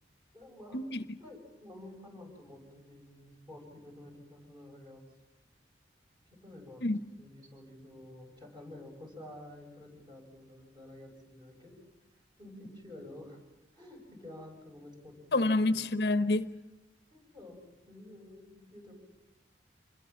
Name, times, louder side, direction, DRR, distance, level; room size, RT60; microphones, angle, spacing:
voice 1, 0.3-0.8 1.2-5.0 6.3-6.8 7.2-11.8 12.4-13.4 13.7-15.8 17.1-18.9, left 1 dB, 25° right, 1 dB, 7.5 m, -50 dB
voice 2, 15.3-16.5, left 2 dB, 65° left, 10 dB, 1.0 m, -28 dB
27.5 x 22.0 x 7.3 m, 0.97 s
head